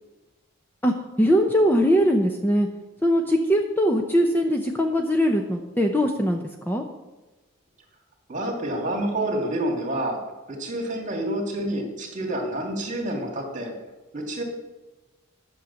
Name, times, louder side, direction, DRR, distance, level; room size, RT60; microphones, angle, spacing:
voice 1, 1.2-2.7 3.0-6.8, equal, 10° left, 3 dB, 0.7 m, -21 dB
voice 2, 8.3-10.2 10.5-13.7 14.1-14.4, right 1 dB, 40° right, 1 dB, 2.4 m, -28 dB
11.0 x 6.4 x 7.0 m, 1.1 s
head